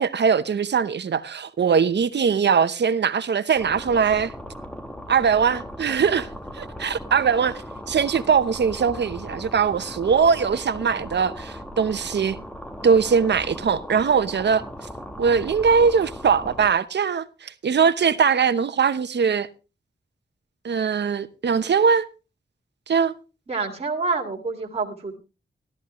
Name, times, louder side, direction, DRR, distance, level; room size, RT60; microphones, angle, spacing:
voice 1, 0.0-4.3 5.1-6.3 6.5-7.6 7.9-12.4 12.8-14.6 15.2-19.5 20.6-22.1 22.9-23.1, right 6 dB, 75° right, 0.9 m, -21 dB
sound 1, 3.6-16.7, equal, 5° left, 1.1 m, -38 dB
voice 2, 23.5-25.2, right 4 dB, 35° right, 2.2 m, -27 dB
13.5 x 13.0 x 3.1 m
wide cardioid pair, 150°, 18 cm